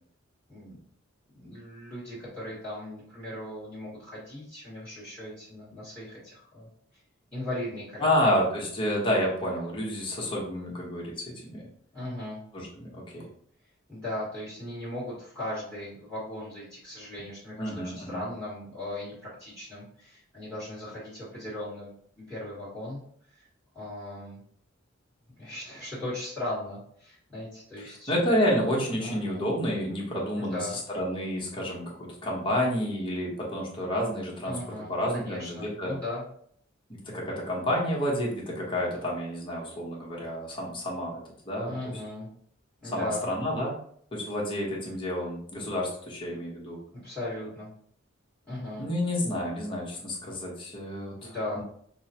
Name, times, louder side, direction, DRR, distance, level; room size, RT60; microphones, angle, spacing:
voice 1, 0.5-0.8 1.3-6.7 7.3-8.1 11.9-12.4 13.9-23.0 23.3-23.5 23.7-24.4 25.4-28.1 29.0-29.4 30.4-30.8 34.4-36.2 41.6-42.3 42.8-43.3 47.0-47.7 48.4-48.9 51.2-51.6, left 1 dB, 5° left, -9 dB, 1.5 m, -38 dB
voice 2, 8.0-11.7 12.5-13.2 17.6-18.2 27.8-34.6 34.9-35.9 36.9-41.2 41.4-41.7 42.8-43.8 44.1-46.8 48.8-51.6, equal, 25° left, -4 dB, 1.1 m, -29 dB
5.4 x 2.2 x 2.8 m, 0.63 s
head